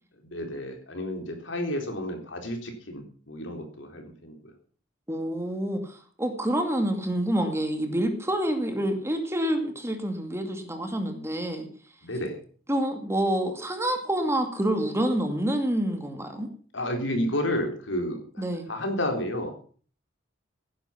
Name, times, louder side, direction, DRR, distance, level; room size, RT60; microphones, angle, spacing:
voice 1, 0.2-4.5 12.0-12.4 16.7-18.4 18.7-19.5, left 1 dB, 75° left, 4 dB, 3.9 m, -31 dB
voice 2, 5.1-11.7 12.7-16.5 18.4-18.7, right 1 dB, 15° right, 5 dB, 2.4 m, -27 dB
16.5 x 10.5 x 5.8 m, 0.43 s
head